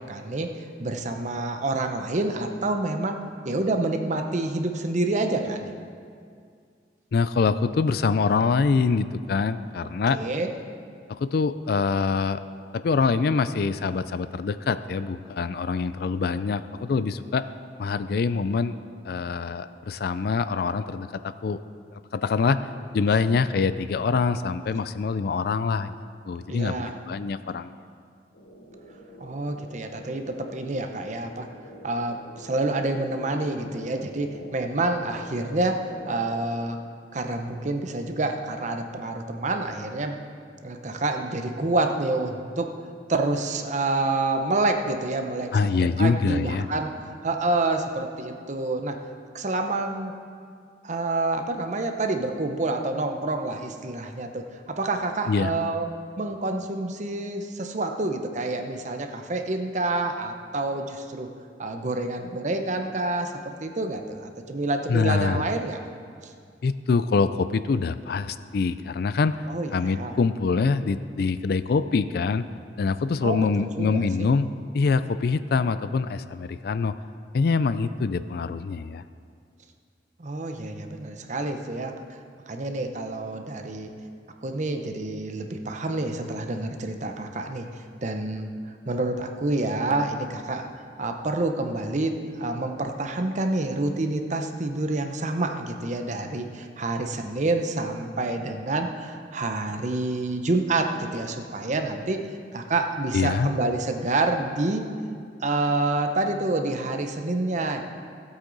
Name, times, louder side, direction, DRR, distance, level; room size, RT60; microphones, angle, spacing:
voice 1, 0.1-5.7 10.1-10.5 26.5-26.9 29.2-31.5 31.8-36.8 37.1-40.2 40.6-42.7 43.1-46.9 47.2-49.0 49.3-50.1 50.8-55.9 56.2-61.3 61.6-65.8 66.2-66.3 69.5-70.2 73.2-74.3 80.2-82.2 82.5-83.9 84.4-88.5 88.9-102.3 102.5-104.9 105.4-107.8, right 2 dB, 40° right, 5 dB, 0.8 m, -28 dB
voice 2, 7.1-10.2 11.2-12.4 12.7-17.4 17.8-18.7 19.0-21.6 22.1-22.6 22.9-26.0 26.3-27.7 45.5-46.7 55.3-55.5 64.9-65.4 66.6-69.4 69.7-72.4 72.8-76.9 77.3-79.0 103.1-103.5, left 4 dB, 60° left, 13 dB, 0.4 m, -24 dB
sound 1, 28.3-36.4, left 1 dB, 75° left, 1.2 m, -44 dB
15.5 x 8.1 x 4.0 m, 2.2 s
head